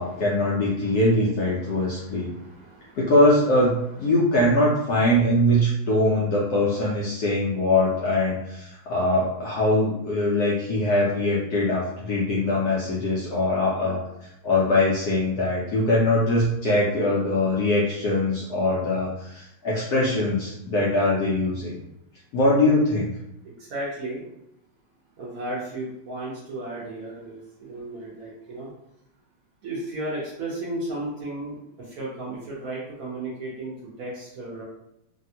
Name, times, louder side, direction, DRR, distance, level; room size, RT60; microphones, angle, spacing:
voice 1, 0.0-2.4 3.0-14.0 14.4-21.8 22.3-23.1, left 1 dB, 75° left, -5 dB, 0.9 m, -22 dB
voice 2, 1.6-3.1 13.7-14.1 22.6-22.7 23.4-24.2 25.2-28.7 29.6-34.6, right 2 dB, 65° right, -6 dB, 0.9 m, -35 dB
3.3 x 2.3 x 2.7 m, 0.82 s
omnidirectional pair, 2.3 m